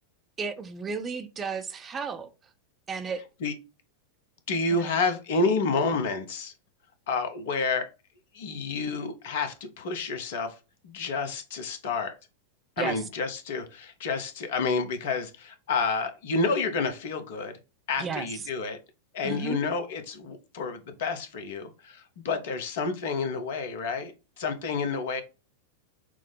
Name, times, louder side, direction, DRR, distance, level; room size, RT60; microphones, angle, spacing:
voice 1, 0.4-2.3 2.9-3.2 4.7-5.0 12.8-13.0 18.0-18.3 19.2-19.6, right 5 dB, 20° right, 0.5 m, -33 dB
voice 2, 4.5-6.5 7.1-7.9 8.3-10.5 10.8-12.1 12.8-17.6 17.9-18.8 19.1-25.2, left 4 dB, 55° left, 0.8 m, -29 dB
6.0 x 2.0 x 3.7 m
figure-of-eight pair, 90°, 0 cm